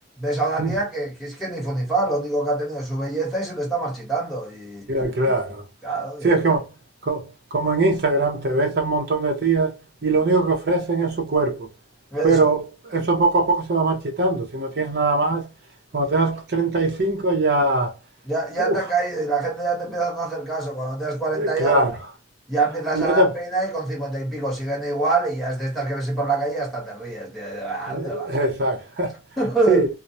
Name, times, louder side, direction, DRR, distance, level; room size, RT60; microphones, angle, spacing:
voice 1, 0.2-4.9 5.2-5.3 5.8-6.5 12.1-12.4 18.2-21.9 22.5-28.3 29.4-29.9, right 3 dB, ahead, 1.1 m, -25 dB
voice 2, 4.9-5.6 6.2-6.7 7.0-7.3 7.5-9.7 10.0-11.7 12.2-15.5 15.9-17.9 18.6-18.9 21.3-21.9 22.9-23.3 27.9-29.1 29.7-29.9, right 2 dB, 60° right, 0.7 m, -21 dB
2.3 x 2.1 x 2.6 m
head